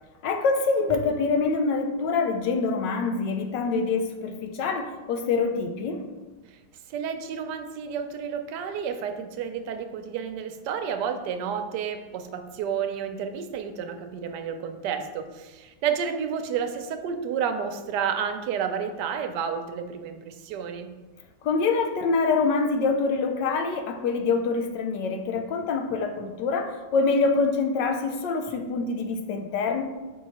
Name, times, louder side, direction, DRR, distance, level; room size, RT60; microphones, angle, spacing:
voice 1, 0.2-6.0 21.4-29.8, left 4 dB, 85° left, 6 dB, 1.3 m, -25 dB
voice 2, 6.9-20.9, right 7 dB, 75° right, 7 dB, 1.2 m, -31 dB
6.0 x 3.8 x 4.2 m, 1.2 s
omnidirectional pair, 1.9 m